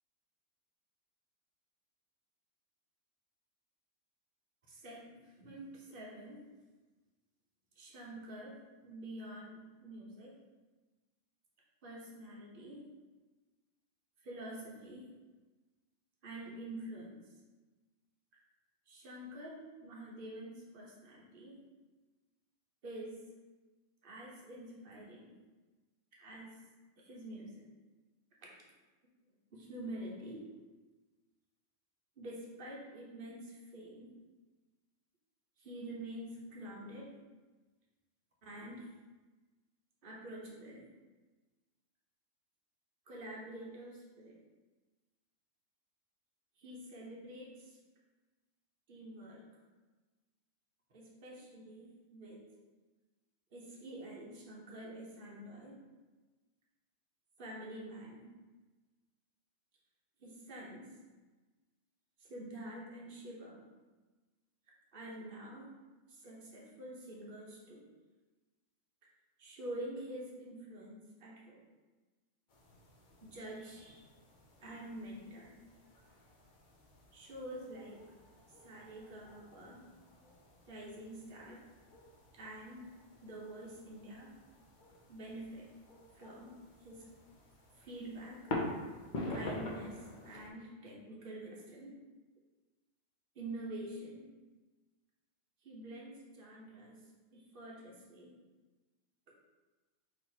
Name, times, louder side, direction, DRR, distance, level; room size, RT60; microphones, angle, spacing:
voice 1, 4.7-6.4 7.8-8.6 8.8-10.3 11.8-12.8 14.2-15.1 16.2-17.3 18.9-21.6 22.8-23.2 24.0-25.3 26.1-26.6 27.0-27.7 28.4-28.6 29.5-30.4 32.2-34.1 35.6-37.1 38.4-38.9 40.0-40.8 43.1-44.4 46.6-47.8 48.9-49.4 50.9-52.4 53.5-55.8 57.4-58.2 60.2-60.9 62.2-63.6 64.9-65.7 66.1-67.8 69.4-71.6 73.2-74.0 74.6-75.5 77.1-78.0 78.6-79.8 80.7-81.6 82.3-82.9 83.2-84.3 85.1-85.7 86.1-86.5 86.8-87.0 87.8-88.4 89.3-92.0 93.3-94.3 95.6-97.0 97.3-98.3 99.3-99.4, right 1 dB, 45° right, -3 dB, 1.1 m, -47 dB
sound 1, 72.5-90.5, left 2 dB, 45° left, 0.7 m, -47 dB
4.0 x 3.0 x 4.4 m, 1.2 s
omnidirectional pair, 1.4 m